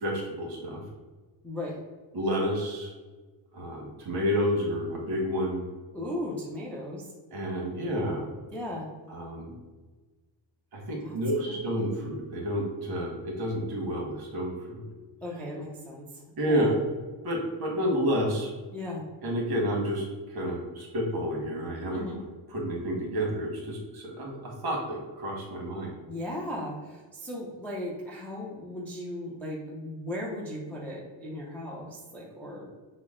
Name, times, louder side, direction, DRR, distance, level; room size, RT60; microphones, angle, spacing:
voice 1, 0.0-0.8 2.1-2.9 3.5-5.6 7.3-8.3 9.1-9.5 10.7-14.9 16.4-16.7 17.2-18.5 19.2-20.0 20.3-22.0 22.5-25.9, equal, 50° right, 0 dB, 1.3 m, -30 dB
voice 2, 1.4-1.8 5.9-7.0 8.5-8.9 11.0-11.2 11.5-11.6 15.2-16.7 18.7-19.1 21.9-22.2 26.1-32.7, left 1 dB, 5° left, -5 dB, 0.4 m, -37 dB
5.9 x 2.1 x 3.6 m, 1.3 s
cardioid pair, 175°, 46 cm